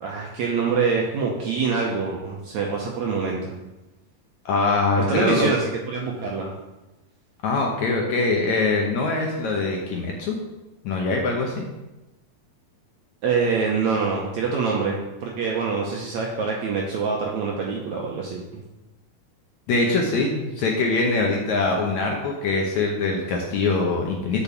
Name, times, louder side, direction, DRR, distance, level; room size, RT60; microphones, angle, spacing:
voice 1, 0.0-3.5 5.1-5.6 5.9-6.5 13.2-18.6, right 5 dB, 75° right, -1 dB, 1.7 m, -25 dB
voice 2, 4.5-5.5 7.4-10.4 10.8-11.6 19.7-24.4, left 3 dB, 70° left, 0 dB, 1.9 m, -23 dB
7.0 x 5.3 x 6.9 m, 1.0 s
omnidirectional pair, 4.2 m